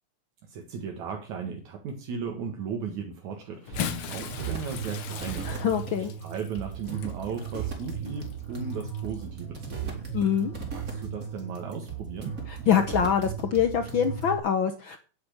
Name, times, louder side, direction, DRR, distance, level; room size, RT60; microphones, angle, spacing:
voice 1, 0.4-5.8 6.2-10.1 10.7-12.3, right 6 dB, 75° right, 2 dB, 2.9 m, -36 dB
Bathtub (filling or washing) / Splash splatter, 3.5-9.2 10.1-10.3 11.7-11.8, left 8 dB, 60° left, 1.5 m, -39 dB
sound 1, 3.7-14.4, right 7 dB, 30° right, 2.9 m, -36 dB
voice 2, 5.4-6.1 10.1-10.5 12.5-15.0, left 8 dB, 75° left, 8 dB, 1.1 m, -25 dB
9.5 x 8.5 x 6.5 m, 0.37 s
omnidirectional pair, 3.4 m